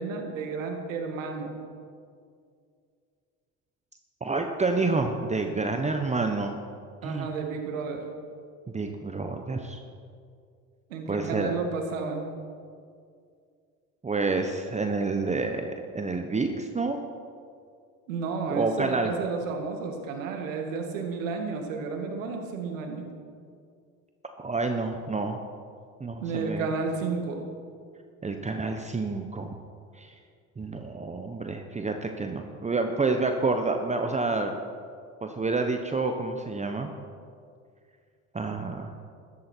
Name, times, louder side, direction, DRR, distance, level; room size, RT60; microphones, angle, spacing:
voice 1, 0.0-1.6 7.0-8.0 10.9-12.2 18.1-23.1 26.2-27.5, right 4 dB, 85° right, 3 dB, 2.0 m, -32 dB
voice 2, 4.2-6.6 7.0-7.3 8.7-9.8 11.1-11.5 14.0-17.0 18.5-19.1 24.4-25.4 26.0-26.7 28.2-29.5 30.0-30.1 30.6-34.6 35.2-36.9 38.3-38.9, right 3 dB, 20° right, 5 dB, 1.1 m, -28 dB
13.5 x 12.5 x 4.5 m, 2.2 s
hypercardioid pair, 75°, 38 cm